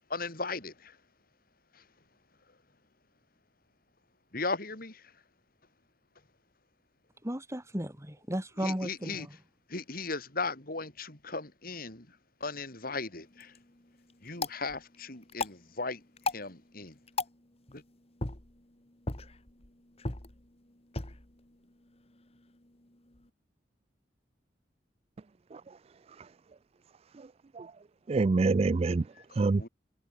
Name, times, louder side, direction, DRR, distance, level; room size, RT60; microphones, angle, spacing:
voice 1, 0.1-1.0 1.7-1.8 4.3-5.1 8.6-9.3 9.7-13.5 14.2-16.0 16.3-17.0 17.7-17.8 29.2-29.3 29.5-29.7, left 3 dB, 55° left, 4.5 m, -37 dB
voice 2, 7.2-9.3, equal, 15° right, 3.1 m, -35 dB
sound 1, 13.2-23.3, left 3 dB, 35° left, 2.4 m, -41 dB
voice 3, 28.1-29.0 29.3-29.7, right 3 dB, 35° right, 0.4 m, -26 dB
head